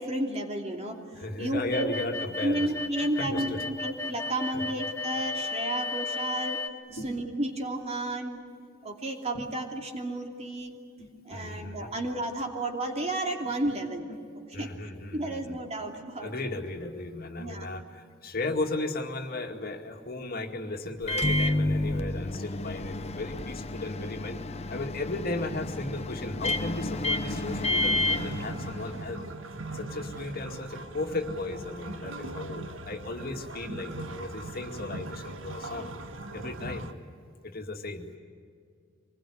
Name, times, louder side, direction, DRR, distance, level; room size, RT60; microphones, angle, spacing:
voice 1, 0.0-1.0 1.4-2.0 2.4-6.6 7.0-8.4 8.8-10.7 11.3-14.1 14.3-14.7 15.1-16.3 17.4-17.7, right 1 dB, 35° right, 3 dB, 2.9 m, -32 dB
voice 2, 1.1-3.6 4.5-4.7 6.9-7.2 9.3-9.5 11.0-11.9 13.4-13.5 14.1-14.2 14.5-15.6 16.2-24.4 24.7-29.2 29.7-35.9 36.3-36.9 37.4-38.1, left 2 dB, 50° left, 3 dB, 2.2 m, -36 dB
sound 1, 1.7-6.7, left 3 dB, 15° left, 1.2 m, -34 dB
Microwave oven, 21.0-29.2, left 1 dB, 35° left, 0.9 m, -30 dB
sound 2, 27.2-36.9, right 2 dB, 90° right, 1.6 m, -40 dB
25.5 x 21.0 x 10.0 m, 2.3 s
head